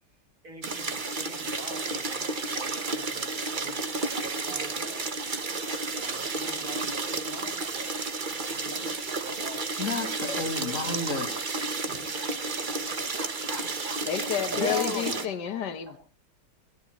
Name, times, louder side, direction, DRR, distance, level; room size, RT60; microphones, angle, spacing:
voice 1, 0.4-3.9 4.1-5.0 6.0-9.7 10.4-11.1 11.8-14.0 14.5-14.7 15.9-16.0, right 1 dB, 55° right, 4.6 m, -46 dB
sound 1, 0.6-15.3, right 3 dB, 35° right, 1.1 m, -32 dB
voice 2, 9.8-11.7 14.6-15.3, left 3 dB, 45° left, 2.1 m, -32 dB
voice 3, 14.1-16.0, left 9 dB, 75° left, 1.7 m, -30 dB
22.0 x 18.0 x 3.1 m
omnidirectional pair, 1.9 m